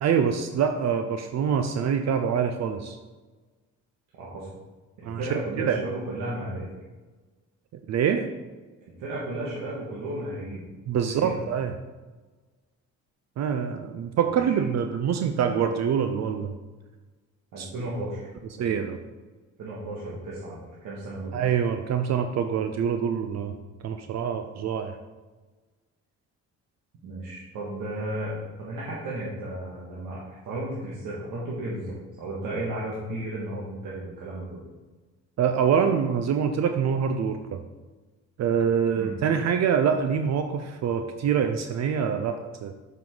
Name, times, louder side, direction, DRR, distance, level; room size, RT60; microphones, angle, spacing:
voice 1, 0.0-3.0 5.0-5.2 5.6-5.8 7.9-8.3 10.9-11.7 13.4-16.5 17.6-17.7 18.6-19.0 21.3-23.5 23.8-25.0 35.4-37.6 38.4-42.7, right 7 dB, 60° right, 7 dB, 0.6 m, -25 dB
voice 2, 5.0-6.7 9.0-10.6 11.1-11.4 14.4-14.6 17.5-18.3 18.6-18.7 19.6-21.4 27.0-34.6 39.0-39.1, right 1 dB, 80° right, -6 dB, 1.8 m, -34 dB
7.5 x 5.7 x 3.9 m, 1.3 s
cardioid pair, 90°, 30 cm